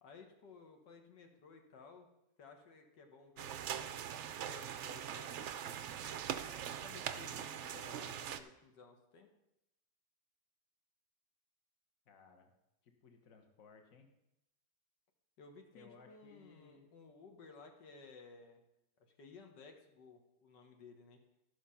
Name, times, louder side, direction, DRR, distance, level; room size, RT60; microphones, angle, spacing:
voice 1, 0.0-2.1 2.4-6.2 6.8-9.3 15.4-18.6 19.0-21.2, left 4 dB, 85° left, 4 dB, 1.9 m, -57 dB
sound 1, 3.4-8.4, right 9 dB, 70° right, 0.6 m, -42 dB
voice 2, 12.1-12.5 12.8-14.1 15.7-16.9, left 5 dB, 55° left, 4 dB, 1.5 m, -61 dB
13.0 x 5.7 x 5.6 m, 0.86 s
omnidirectional pair, 1.8 m